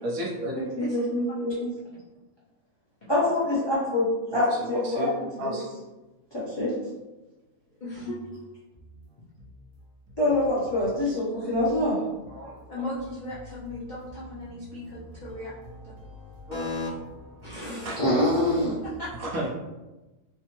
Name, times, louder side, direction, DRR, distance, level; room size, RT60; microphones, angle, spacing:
voice 1, 0.0-0.5 4.3-5.1 5.4-5.7 9.4-9.5 10.1-10.2 12.3-12.6 14.4-15.4 15.9-16.7 17.4-18.1 18.7-18.9 19.2-19.5, equal, 70° right, -4 dB, 1.1 m, -34 dB
voice 2, 0.8-1.7 3.1-5.1 5.4-5.5 6.3-6.7 10.2-12.0 18.0-18.7, left 1 dB, 20° left, -9 dB, 0.8 m, -25 dB
voice 3, 7.8-8.2 12.7-15.5 16.5-16.9 17.4-18.0 18.8-19.1, left 2 dB, 65° left, -8 dB, 0.4 m, -36 dB
3.4 x 2.0 x 3.0 m, 1.1 s
omnidirectional pair, 1.6 m